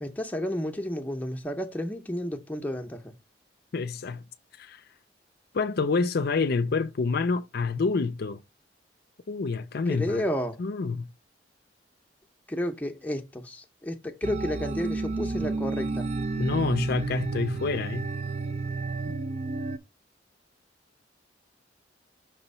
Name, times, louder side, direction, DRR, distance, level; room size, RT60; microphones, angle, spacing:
voice 1, 0.0-3.1 9.9-10.6 12.5-16.1, equal, 10° left, 0.7 m, -31 dB
voice 2, 3.7-4.2 4.6-4.8 5.5-8.4 9.3-10.2 10.6-11.1 16.4-18.1, left 4 dB, 55° left, 0.5 m, -27 dB
sound 1, 14.2-19.8, right 3 dB, 35° right, 0.4 m, -31 dB
6.1 x 3.0 x 5.3 m
head